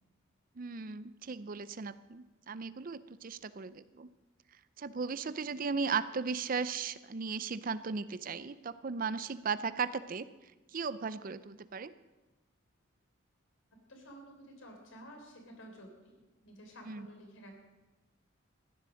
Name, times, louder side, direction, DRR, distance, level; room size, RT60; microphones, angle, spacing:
voice 1, 0.6-4.1 4.8-10.3 10.7-11.9 16.9-17.1, right 5 dB, 45° right, 14 dB, 0.5 m, -36 dB
voice 2, 13.9-17.5, equal, 75° left, 2 dB, 3.7 m, -52 dB
15.0 x 10.5 x 6.3 m, 1.1 s
head